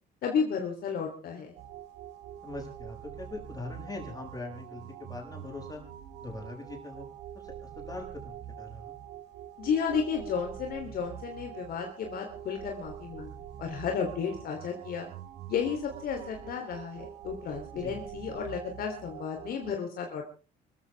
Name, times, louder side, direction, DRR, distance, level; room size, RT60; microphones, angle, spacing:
voice 1, 0.2-1.6 9.6-13.3 13.6-15.1 15.5-20.3, left 6 dB, 65° left, 2 dB, 3.4 m, -32 dB
sound 1, 1.6-19.7, right 10 dB, 85° right, 2.0 m, -45 dB
voice 2, 2.4-5.8 6.2-7.1 7.4-9.0 17.7-17.9, left 2 dB, 20° left, 1 dB, 7.1 m, -42 dB
25.5 x 14.5 x 3.5 m, 0.34 s
cardioid pair, 110°, 17 cm